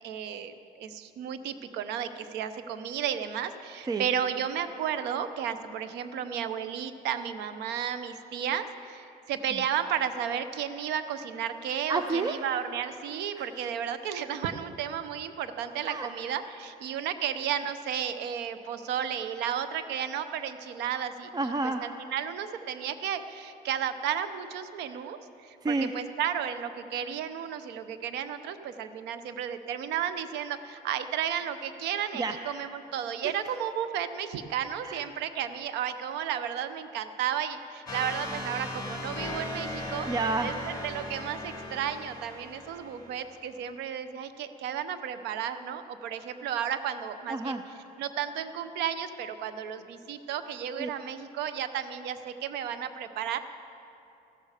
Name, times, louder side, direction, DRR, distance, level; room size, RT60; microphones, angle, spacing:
voice 1, 0.0-21.3 21.8-40.1 40.4-47.6 48.0-53.4, right 9 dB, 85° right, 11 dB, 0.8 m, -33 dB
voice 2, 11.9-12.3 13.4-13.5 15.9-16.1 21.3-21.8 25.6-25.9 32.1-32.4 33.2-33.3 34.8-35.1 40.1-40.5 47.3-47.6 50.8-50.9, right 3 dB, 25° right, 7 dB, 0.5 m, -30 dB
sound 1, 37.9-43.4, left 1 dB, 20° left, 2.2 m, -38 dB
14.5 x 13.0 x 5.0 m, 2.8 s
cardioid pair, 110°, 17 cm